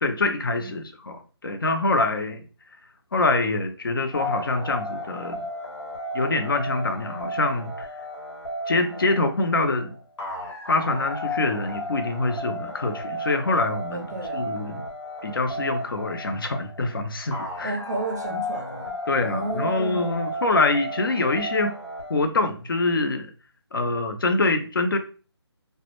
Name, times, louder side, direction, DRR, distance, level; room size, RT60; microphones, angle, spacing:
voice 1, 0.0-2.4 3.1-5.5 6.1-7.9 8.7-9.9 10.7-14.1 14.3-14.8 15.2-17.8 18.3-18.4 19.1-21.7 22.1-23.3 23.7-25.0, left 2 dB, 55° left, 0.5 m, -25 dB
sound 1, 4.1-22.2, equal, 85° left, 1.2 m, -34 dB
voice 2, 13.9-14.5 17.6-18.9 19.2-20.2, right 2 dB, 40° right, 0.4 m, -32 dB
2.1 x 2.0 x 2.9 m
figure-of-eight pair, 165°, 14 cm